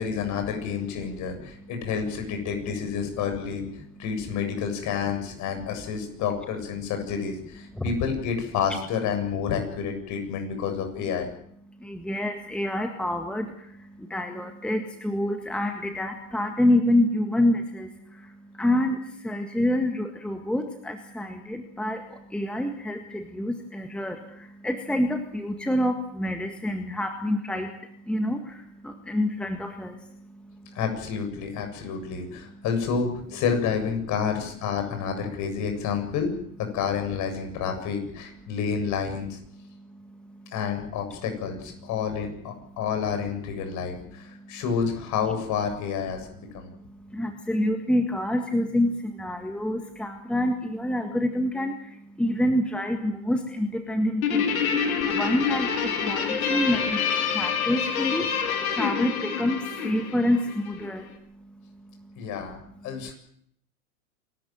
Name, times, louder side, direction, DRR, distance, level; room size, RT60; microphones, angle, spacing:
voice 1, 0.0-3.6 4.0-11.3 30.7-36.3 36.7-39.4 40.5-46.7 62.2-63.1, left 6 dB, 40° left, 5 dB, 7.5 m, -29 dB
voice 2, 11.9-13.5 14.1-17.9 18.6-19.0 19.2-22.0 22.3-24.2 24.6-27.7 28.1-28.4 28.8-29.9 47.1-48.9 49.2-51.7 52.2-54.4 55.1-57.0 57.3-58.2 58.8-61.0, left 1 dB, ahead, 5 dB, 1.8 m, -26 dB
Guitar, 54.2-60.9, left 7 dB, 70° left, 4.7 m, -27 dB
27.5 x 13.5 x 9.2 m, 0.70 s
hypercardioid pair, 120°, 44 cm